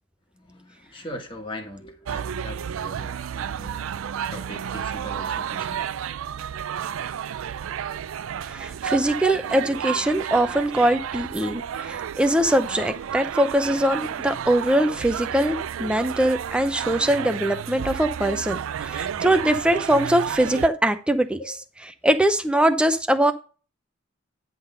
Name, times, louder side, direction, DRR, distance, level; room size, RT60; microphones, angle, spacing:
voice 1, 0.3-3.8 4.3-5.8 19.3-19.5 21.4-21.5, left 1 dB, 25° left, 3 dB, 1.5 m, -40 dB
sound 1, 2.1-20.7, right 8 dB, 85° right, 0.4 m, -31 dB
voice 2, 8.4-21.6 22.0-23.3, right 1 dB, 5° right, 8 dB, 0.7 m, -22 dB
9.8 x 3.8 x 5.5 m, 0.36 s
head